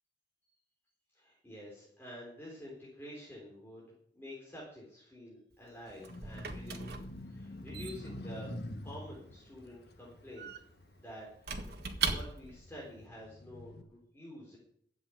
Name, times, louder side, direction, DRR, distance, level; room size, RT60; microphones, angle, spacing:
voice 1, 1.1-8.5 8.8-10.5 11.0-11.6 12.1-14.6, equal, 10° left, -5 dB, 3.8 m, -49 dB
Squeak / Wood, 5.5-12.7, right 5 dB, 65° right, 1.6 m, -41 dB
sound 1, 5.9-11.4 12.0-13.8, left 1 dB, 65° left, 1.4 m, -46 dB
12.0 x 7.8 x 9.1 m, 0.66 s
head